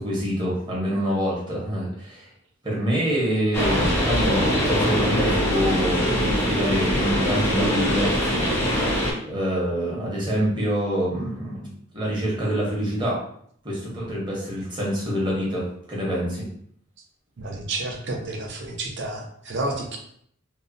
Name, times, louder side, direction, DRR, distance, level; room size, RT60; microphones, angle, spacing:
voice 1, 0.0-2.3 2.6-13.2 13.6-16.5, equal, 20° right, -5 dB, 0.8 m, -26 dB
sound 1, 3.5-9.1, equal, 10° left, 0.4 m, -22 dB
voice 2, 17.4-20.0, right 2 dB, 55° right, 2 dB, 0.5 m, -30 dB
2.7 x 2.0 x 2.5 m, 0.65 s
head